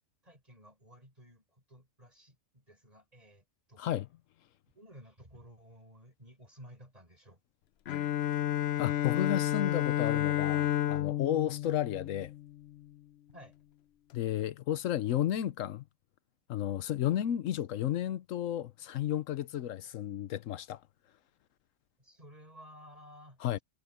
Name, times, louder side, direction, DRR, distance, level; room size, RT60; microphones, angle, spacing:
voice 1, 0.2-3.9 4.7-7.4 13.3-13.5 22.0-23.4, equal, 30° right, 6.6 m, -55 dB
Bowed string instrument, 7.9-12.7, left 12 dB, 65° left, 0.8 m, -31 dB
voice 2, 8.8-12.3 14.1-15.8 16.5-20.8 23.4-23.6, left 11 dB, 90° left, 1.1 m, -32 dB
omnidirectional pair, 1.3 m